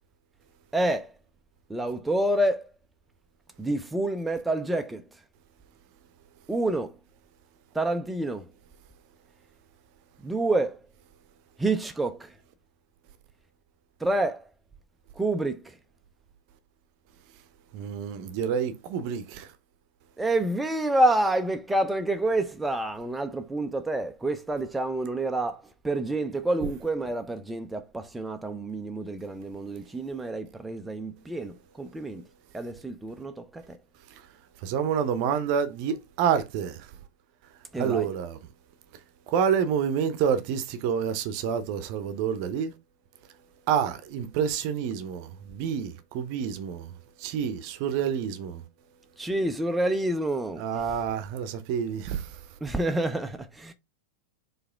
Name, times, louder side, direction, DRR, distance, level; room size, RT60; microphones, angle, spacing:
voice 1, 0.7-1.1 1.7-2.7 3.6-5.0 6.5-7.0 7.7-8.5 10.2-10.8 11.6-12.3 14.0-14.5 15.2-15.7 20.2-32.2 32.5-33.8 37.7-38.1 49.2-50.8 52.6-53.7, right 2 dB, 10° right, 0.5 m, -28 dB
voice 2, 17.7-19.5 34.1-34.2 34.6-36.9 37.8-38.4 39.3-42.7 43.7-48.6 50.6-52.4, right 7 dB, 45° right, 0.7 m, -28 dB
4.8 x 3.2 x 3.5 m
figure-of-eight pair, 90°, 0 cm